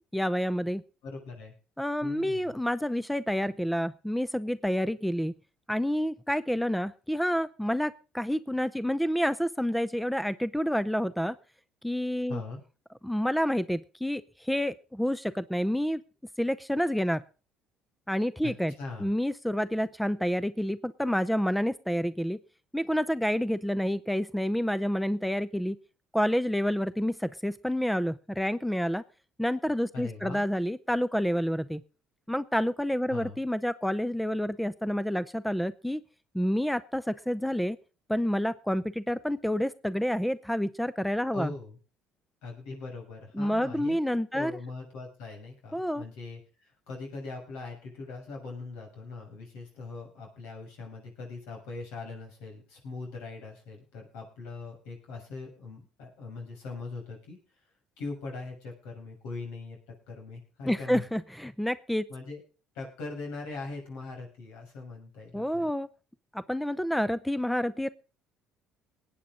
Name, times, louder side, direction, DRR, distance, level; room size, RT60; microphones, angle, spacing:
voice 1, 0.1-0.8 1.8-5.3 5.7-11.4 11.8-12.4 13.0-16.0 16.4-17.2 18.1-18.7 19.0-22.4 22.7-25.8 26.1-29.0 29.4-31.8 32.3-36.0 36.3-37.8 38.1-41.5 43.3-44.5 45.7-46.0 60.7-62.1 65.3-65.9 66.3-67.9, equal, 5° left, 16 dB, 0.6 m, -29 dB
voice 2, 1.0-1.5 2.0-2.5 12.3-12.6 18.4-19.1 29.9-30.4 33.1-33.4 41.3-41.8 42.4-57.4 58.0-59.8 60.1-61.0 62.1-62.4 62.7-65.7, left 3 dB, 85° left, 0 dB, 6.8 m, -41 dB
20.5 x 8.8 x 3.8 m, 0.34 s
supercardioid pair, 85°, 0 cm